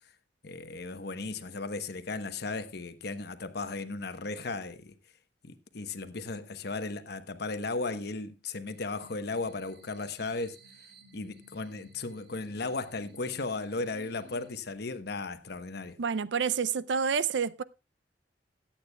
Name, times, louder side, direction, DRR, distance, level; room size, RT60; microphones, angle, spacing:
voice 1, 0.4-4.9 5.4-10.6 11.1-16.0, left 3 dB, 60° left, 1.0 m, -36 dB
sound 1, 8.7-14.6, equal, 60° right, 1.8 m, -56 dB
voice 2, 16.0-17.6, right 6 dB, 75° right, 0.5 m, -28 dB
21.5 x 8.7 x 2.3 m
head